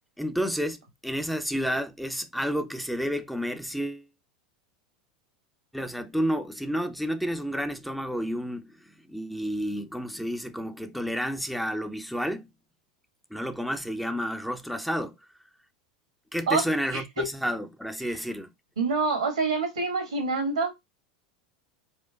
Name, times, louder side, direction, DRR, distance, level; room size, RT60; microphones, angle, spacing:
voice 1, 0.2-4.1 5.7-8.7 9.1-12.5 13.3-15.2 16.3-18.5, equal, ahead, 0.5 m, -30 dB
voice 2, 18.8-20.7, right 4 dB, 90° right, 1.4 m, -26 dB
4.4 x 2.2 x 2.2 m
hypercardioid pair, 90°, 3 cm